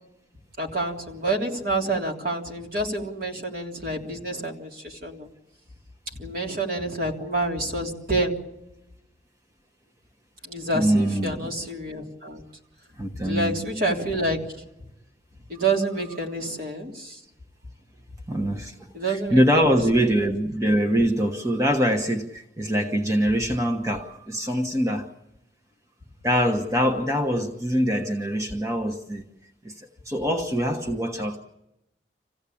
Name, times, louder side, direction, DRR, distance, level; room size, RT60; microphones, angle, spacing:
voice 1, 0.6-5.3 6.2-8.3 10.4-12.4 13.2-14.4 15.5-17.2 18.9-20.0, right 2 dB, 50° right, 0 dB, 3.3 m, -28 dB
voice 2, 10.7-11.4 13.0-13.6 18.3-25.1 26.2-29.2 29.6-31.4, equal, 15° right, 3 dB, 1.2 m, -24 dB
27.0 x 16.0 x 8.6 m, 0.93 s
head